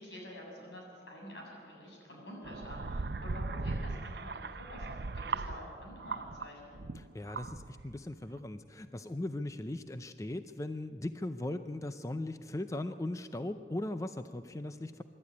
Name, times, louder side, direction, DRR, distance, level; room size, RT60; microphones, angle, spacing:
voice 1, 0.0-6.7, equal, 85° left, -1 dB, 7.8 m, -48 dB
sound 1, 2.4-6.5 6.7-8.0, right 3 dB, 65° right, 0.7 m, -38 dB
voice 2, 6.9-15.0, left 1 dB, 20° left, 9 dB, 0.5 m, -38 dB
25.5 x 12.5 x 9.7 m, 2.4 s
head